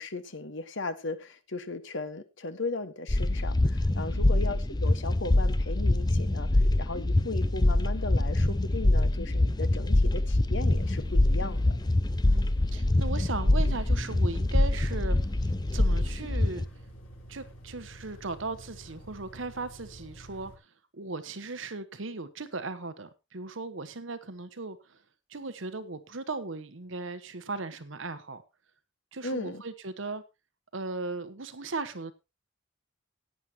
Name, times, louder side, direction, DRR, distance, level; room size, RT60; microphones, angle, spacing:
voice 1, 0.0-11.8 29.2-29.6, left 3 dB, 65° left, 11 dB, 1.3 m, -37 dB
sound 1, 3.1-16.7, left 1 dB, 20° left, 0.6 m, -25 dB
voice 2, 4.1-4.4 12.3-15.2 15.4-16.6 17.3-25.0 25.3-28.4 29.1-30.2 30.7-32.1, right 3 dB, 70° right, 12 dB, 1.1 m, -37 dB
sound 2, 10.5-20.6, right 1 dB, 85° left, 4.3 m, -49 dB
17.0 x 9.3 x 2.9 m, 0.25 s
head